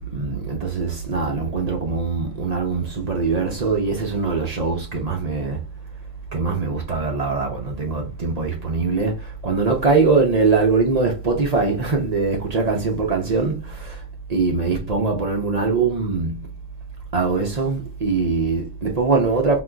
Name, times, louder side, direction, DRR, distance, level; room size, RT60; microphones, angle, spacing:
voice 1, 0.1-5.6 6.3-14.0 14.3-16.5 17.1-19.6, right 4 dB, 50° right, 0.4 m, -22 dB
3.8 x 2.6 x 2.2 m
omnidirectional pair, 1.5 m